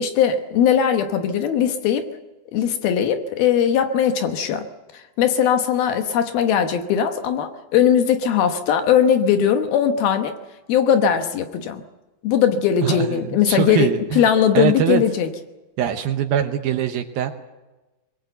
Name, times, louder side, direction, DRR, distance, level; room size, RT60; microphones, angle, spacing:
voice 1, 0.0-2.1 2.5-4.7 5.2-10.4 10.7-11.8 12.2-13.9 14.2-15.3, left 8 dB, 70° left, 7 dB, 2.8 m, -19 dB
voice 2, 12.8-14.2 14.5-15.0 15.8-17.3, right 10 dB, 70° right, 6 dB, 2.5 m, -22 dB
23.0 x 21.0 x 8.1 m, 1.1 s
omnidirectional pair, 4.9 m